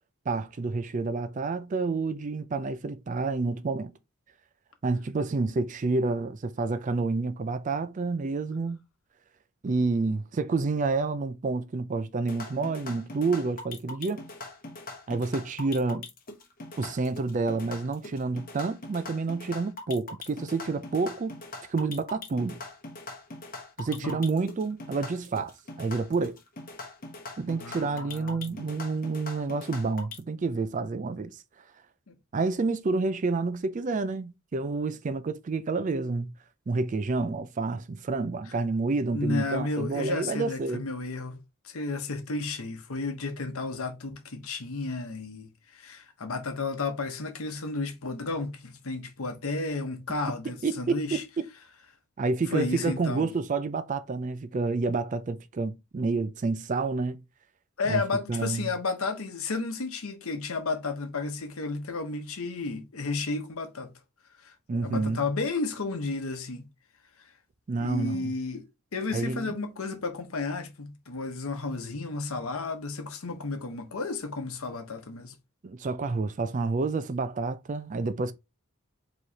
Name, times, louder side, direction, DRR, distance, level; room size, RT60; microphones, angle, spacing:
voice 1, 0.3-3.9 4.8-8.8 9.6-14.2 15.1-16.1 16.8-21.4 21.7-22.6 23.8-26.4 27.4-31.3 32.3-36.3 36.7-40.8 50.6-51.5 52.2-57.2 57.9-58.0 58.3-58.7 64.7-65.2 67.7-68.3 69.1-69.5 75.6-78.3, right 3 dB, 35° right, 0.3 m, -29 dB
sound 1, 12.2-30.2, left 2 dB, 40° left, 1.0 m, -42 dB
voice 2, 23.9-24.2 27.5-28.6 32.1-32.2 39.1-41.4 41.6-51.2 52.5-53.3 57.8-63.9 64.4-66.6 67.2-67.3 67.8-68.7 68.9-75.3, left 3 dB, 70° left, 0.9 m, -32 dB
4.9 x 3.1 x 2.8 m
head